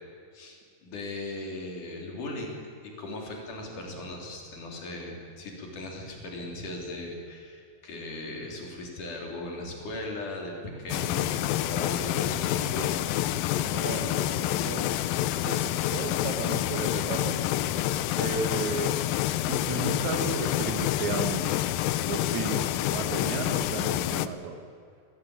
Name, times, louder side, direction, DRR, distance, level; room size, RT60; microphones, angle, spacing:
voice 1, 0.8-2.6 3.0-13.0, left 1 dB, 55° left, 0 dB, 4.5 m, -38 dB
sound 1, 10.9-24.3, left 14 dB, 80° left, 2.2 m, -28 dB
voice 2, 13.6-14.9 15.5-17.4 18.2-18.9 19.5-21.7 22.0-24.6, right 5 dB, 55° right, 6 dB, 2.7 m, -34 dB
21.0 x 17.0 x 8.9 m, 2.3 s
omnidirectional pair, 4.7 m